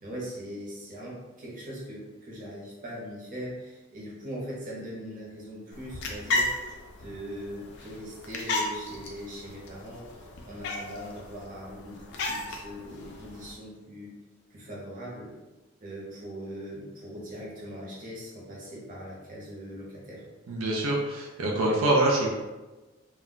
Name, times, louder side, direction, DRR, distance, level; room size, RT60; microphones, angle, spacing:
voice 1, 0.0-6.7 7.0-14.1 14.5-15.3 15.8-20.2, equal, 40° right, -5 dB, 0.8 m, -40 dB
sound 1, 5.7-13.5, left 2 dB, 55° left, 0.4 m, -35 dB
voice 2, 20.5-22.3, right 1 dB, 85° right, -2 dB, 0.4 m, -25 dB
2.2 x 2.1 x 3.7 m, 1.2 s
head